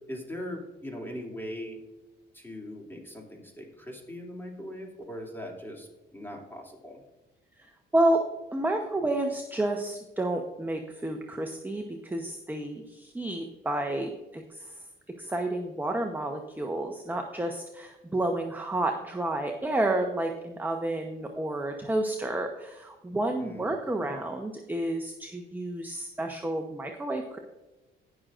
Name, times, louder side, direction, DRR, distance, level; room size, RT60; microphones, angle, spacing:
voice 1, 0.1-1.8 2.3-7.0 23.4-23.7 24.0-24.2, equal, 10° left, 0 dB, 2.7 m, -40 dB
voice 2, 8.5-14.7 15.2-27.4, right 1 dB, 10° right, 3 dB, 0.9 m, -30 dB
19.0 x 6.3 x 2.5 m, 1.1 s
cardioid pair, 90°, 20 cm